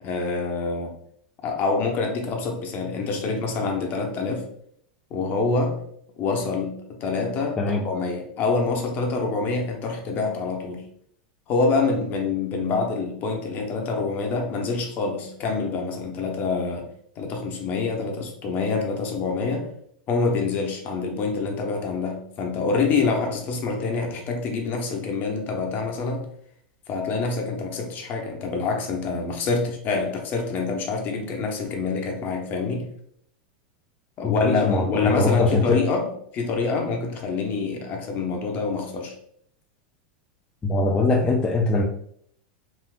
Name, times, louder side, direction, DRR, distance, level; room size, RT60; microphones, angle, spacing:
voice 1, 0.0-1.0 1.4-4.5 5.1-5.9 6.2-10.8 11.5-16.9 17.2-19.7 20.1-26.3 26.9-32.9 34.2-39.1, left 4 dB, 40° left, 2 dB, 0.8 m, -26 dB
voice 2, 34.2-35.8 40.6-41.8, left 3 dB, 15° left, -2 dB, 0.4 m, -22 dB
3.4 x 2.7 x 2.4 m, 0.66 s
hypercardioid pair, 115°, 5 cm